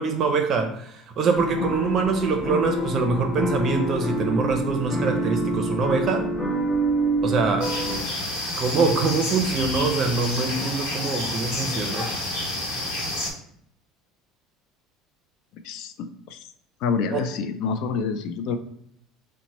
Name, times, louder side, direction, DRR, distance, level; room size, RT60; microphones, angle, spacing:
voice 1, 0.0-6.3 7.2-7.7 8.6-12.1 17.1-17.2, right 4 dB, 35° right, 4 dB, 0.5 m, -24 dB
sound 1, 1.3-8.0, right 1 dB, 15° left, 0.7 m, -27 dB
sound 2, 7.6-13.3, left 1 dB, 85° left, 1.0 m, -29 dB
voice 2, 15.6-16.4 16.8-18.6, left 5 dB, 60° left, 9 dB, 0.3 m, -27 dB
2.9 x 2.1 x 4.1 m, 0.70 s
cardioid pair, 145°, 0 cm